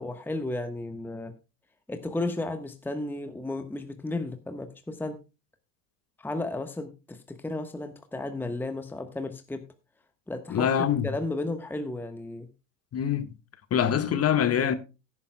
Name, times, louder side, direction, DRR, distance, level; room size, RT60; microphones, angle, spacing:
voice 1, 0.0-1.3 1.9-5.2 6.2-9.6 10.3-10.7 11.0-12.5, left 2 dB, 5° left, 1.2 m, -33 dB
voice 2, 10.5-11.1 12.9-13.3 13.7-14.7, left 9 dB, 30° left, 1.6 m, -24 dB
17.0 x 9.8 x 2.2 m
hypercardioid pair, 100°, 48 cm